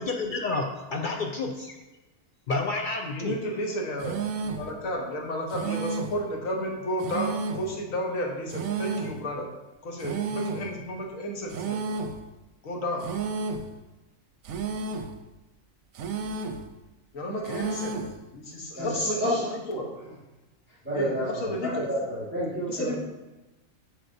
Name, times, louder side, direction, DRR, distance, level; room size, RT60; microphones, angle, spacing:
voice 1, 0.0-1.7 2.5-3.3, left 3 dB, 60° left, 2 dB, 0.5 m, -30 dB
voice 2, 3.1-4.2 4.4-9.5 9.8-11.8 12.6-13.1 17.1-18.0 18.3-19.2 19.7-19.9 20.9-21.9 22.7-23.0, equal, 80° left, 1 dB, 1.5 m, -32 dB
sound 1, 4.0-4.7 5.5-6.2 7.0-7.7 8.5-9.2 10.0-10.7 11.5-12.2 13.0-13.7 14.5-15.2 16.0-16.7 17.5-18.2, right 4 dB, 85° right, 1.1 m, -32 dB
voice 3, 18.8-19.5 20.8-23.0, equal, 10° right, -9 dB, 1.6 m, -29 dB
7.9 x 6.1 x 2.6 m, 1.1 s
omnidirectional pair, 1.4 m